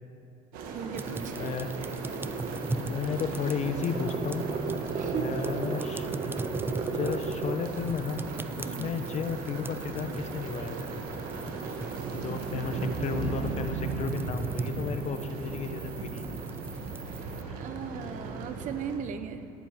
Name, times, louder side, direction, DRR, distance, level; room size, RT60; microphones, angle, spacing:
sound 1, 0.5-19.0, right 4 dB, 80° right, 1.5 m, -37 dB
voice 1, 0.7-1.5 5.0-5.3 8.6-9.0 12.3-12.4 17.5-19.5, right 8 dB, 65° right, 10 dB, 0.8 m, -37 dB
sound 2, 1.0-17.4, right 3 dB, 15° right, 0.5 m, -40 dB
voice 2, 1.4-1.7 2.7-4.4 5.1-6.1 6.9-8.2 8.6-10.9 12.1-16.3 17.5-17.6, left 5 dB, 50° left, 8 dB, 1.0 m, -33 dB
sound 3, 2.9-7.9, right 5 dB, 40° right, 1.1 m, -35 dB
10.5 x 8.8 x 7.2 m, 2.5 s
supercardioid pair, 85°, 15 cm